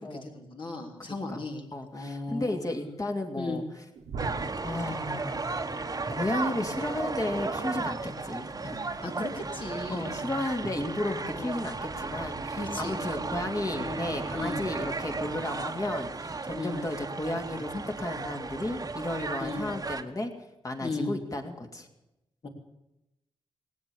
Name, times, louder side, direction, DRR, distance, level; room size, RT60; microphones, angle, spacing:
voice 1, 0.0-1.6 1.9-2.6 3.4-3.6 9.0-10.2 11.3-11.5 12.6-13.0 13.8-14.0 14.3-14.6 16.5-16.8 19.4-19.6 20.8-21.1 22.4-22.5, left 2 dB, 50° left, 1 dB, 3.4 m, -36 dB
voice 2, 1.0-1.4 1.7-3.6 4.6-5.5 6.2-8.8 9.9-20.3 20.6-21.9, left 1 dB, 35° left, 3 dB, 2.7 m, -33 dB
sound 1, 4.0-5.9 8.8-11.2, right 4 dB, 80° right, 1.4 m, -44 dB
sound 2, 4.2-20.0, right 3 dB, 35° right, 1.2 m, -35 dB
17.5 x 9.1 x 8.6 m, 0.92 s
supercardioid pair, 50°, 11 cm